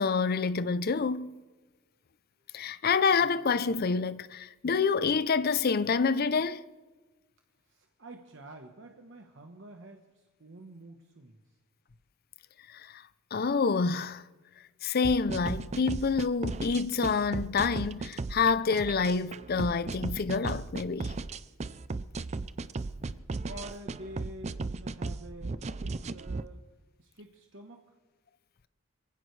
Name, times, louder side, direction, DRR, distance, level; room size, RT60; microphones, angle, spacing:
voice 1, 0.0-1.4 2.5-6.7 12.7-13.0 13.3-14.2 14.8-21.1, left 5 dB, 45° left, 0.5 m, -27 dB
voice 2, 7.7-11.4 23.4-26.6 27.0-28.0, right 1 dB, 60° right, 1.1 m, -48 dB
sound 1, 15.0-26.4, right 3 dB, 30° right, 0.4 m, -36 dB
23.5 x 16.0 x 3.3 m
head